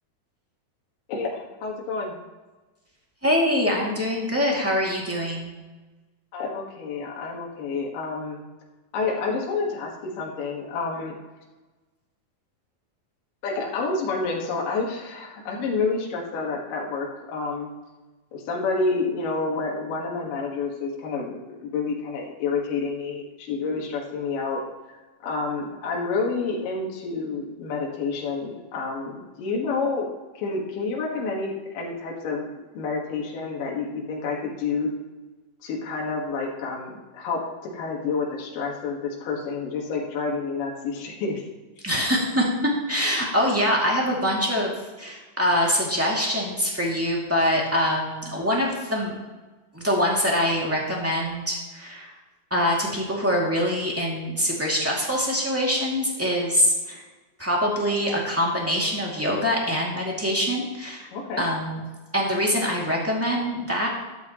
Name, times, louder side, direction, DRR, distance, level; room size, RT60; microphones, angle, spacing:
voice 1, 1.1-2.2 6.3-8.4 8.9-11.2 13.4-17.7 18.3-24.6 25.2-30.1 30.3-32.5 32.7-34.9 35.6-41.4 61.1-61.4, left 4 dB, 70° left, -1 dB, 3.1 m, -29 dB
voice 2, 3.2-5.5 41.8-42.5 42.9-44.7 45.0-49.1 49.7-52.1 52.5-57.0 57.4-61.1 61.4-61.8 62.1-63.9, equal, 5° right, -3 dB, 1.4 m, -24 dB
13.0 x 12.0 x 3.0 m, 1.2 s
omnidirectional pair, 4.2 m